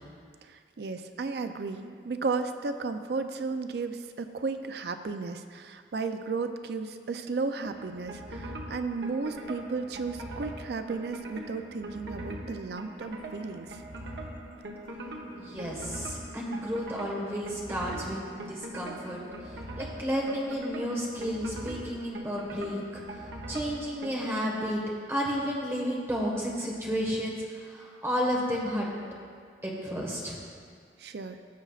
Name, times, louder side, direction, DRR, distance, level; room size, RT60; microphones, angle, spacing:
voice 1, 0.4-13.8 31.0-31.4, right 4 dB, 65° right, 8 dB, 0.4 m, -34 dB
sound 1, 7.6-24.2, right 1 dB, 85° right, 1.0 m, -41 dB
voice 2, 15.4-19.2 19.8-23.0 23.5-24.8 25.1-27.4 27.7-28.9 29.6-30.4, equal, 15° right, -3 dB, 1.5 m, -32 dB
16.0 x 7.0 x 2.4 m, 2.1 s
head